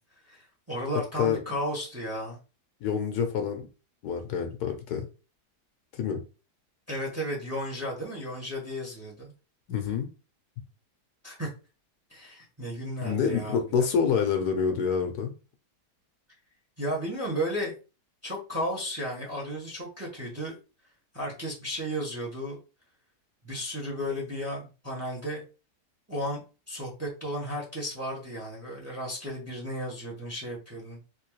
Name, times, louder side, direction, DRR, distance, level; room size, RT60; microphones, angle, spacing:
voice 1, 0.3-2.4 6.9-9.3 11.2-11.5 12.1-13.9 16.8-17.7 18.2-20.5 21.1-22.6 23.4-25.4 26.1-31.0, equal, 10° right, -2 dB, 1.0 m, -34 dB
voice 2, 2.8-3.7 4.0-5.1 5.9-6.2 9.7-10.1 13.0-15.3, left 7 dB, 70° left, 6 dB, 1.2 m, -27 dB
3.5 x 3.0 x 3.1 m, 0.32 s
omnidirectional pair, 1.8 m